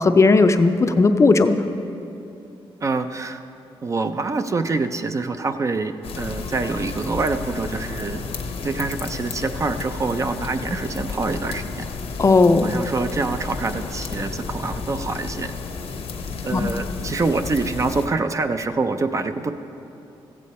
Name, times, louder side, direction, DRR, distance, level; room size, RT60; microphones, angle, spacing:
voice 1, 0.0-1.6 12.2-12.7 16.5-16.7, left 3 dB, 30° left, 8 dB, 0.4 m, -16 dB
voice 2, 2.8-3.4 3.8-8.2 8.6-11.9 12.6-15.5 16.4-19.5, right 3 dB, 30° right, 8 dB, 0.4 m, -25 dB
sound 1, 6.0-18.1, left 4 dB, 85° left, 0.8 m, -32 dB
14.5 x 8.3 x 4.2 m, 2.8 s
wide cardioid pair, 130°, 10 cm